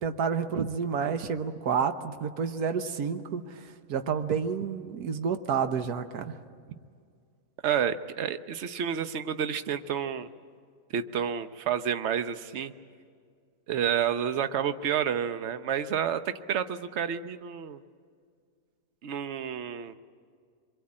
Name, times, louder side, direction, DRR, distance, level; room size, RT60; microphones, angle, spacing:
voice 1, 0.0-6.3, right 6 dB, 70° right, 8 dB, 1.5 m, -30 dB
voice 2, 7.6-10.3 10.9-12.7 13.7-17.8 19.0-19.9, right 8 dB, 50° right, 10 dB, 1.0 m, -30 dB
25.5 x 22.5 x 8.6 m, 2.1 s
omnidirectional pair, 1.8 m